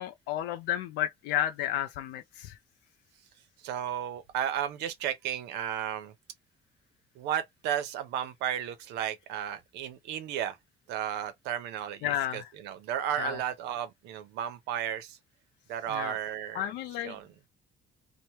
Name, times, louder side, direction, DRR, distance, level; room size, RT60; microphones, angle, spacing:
voice 1, 0.0-2.5 12.0-12.5 13.2-13.4 15.9-16.1 16.5-17.2, left 12 dB, 85° left, 0.4 m, -32 dB
voice 2, 3.6-6.1 7.2-10.6 10.9-15.2 15.7-16.7 17.0-17.3, right 10 dB, 90° right, 0.7 m, -34 dB
2.9 x 2.1 x 2.9 m
cardioid pair, 110°, 17 cm